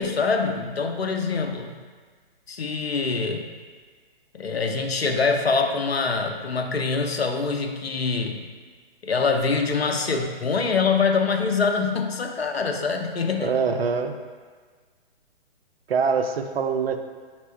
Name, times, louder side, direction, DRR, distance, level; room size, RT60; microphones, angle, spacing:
voice 1, 0.0-1.8 2.5-3.5 4.3-8.4 9.0-13.6, left 4 dB, 90° left, 4 dB, 0.5 m, -24 dB
voice 2, 13.4-14.2 15.9-17.0, right 5 dB, 80° right, 6 dB, 0.5 m, -24 dB
4.1 x 2.9 x 3.2 m, 1.5 s
figure-of-eight pair, 130°, 30 cm